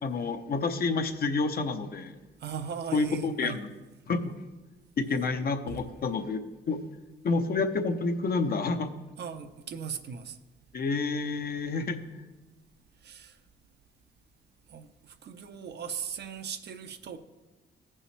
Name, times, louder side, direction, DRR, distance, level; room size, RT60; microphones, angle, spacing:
voice 1, 0.0-2.2 2.9-3.7 4.1-4.3 5.0-6.4 6.7-6.8 7.2-8.9 10.7-12.0, left 3 dB, 50° left, 8 dB, 0.8 m, -29 dB
voice 2, 2.4-3.6 9.2-10.4 13.0-13.4 14.7-17.2, right 7 dB, 60° right, 8 dB, 0.7 m, -38 dB
15.0 x 5.5 x 3.3 m, 1.2 s
cardioid pair, 90°, 20 cm